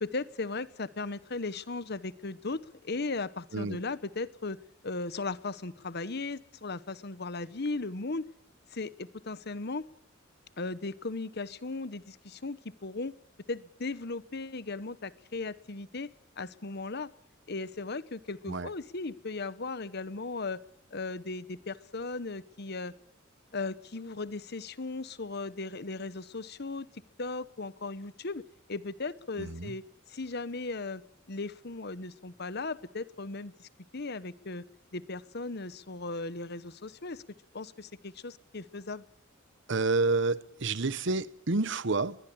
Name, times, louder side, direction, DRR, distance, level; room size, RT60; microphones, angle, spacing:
voice 1, 0.0-4.6 4.8-8.3 8.7-9.9 10.6-13.1 13.5-16.1 16.4-17.1 17.5-20.6 20.9-22.9 23.5-26.9 27.2-29.8 30.1-31.0 31.3-34.6 34.9-37.2 37.5-39.0, left 3 dB, 55° left, 16 dB, 1.1 m, -37 dB
voice 2, 29.4-29.7 39.7-42.2, right 3 dB, 65° right, 17 dB, 1.0 m, -29 dB
22.0 x 21.0 x 8.7 m, 0.64 s
head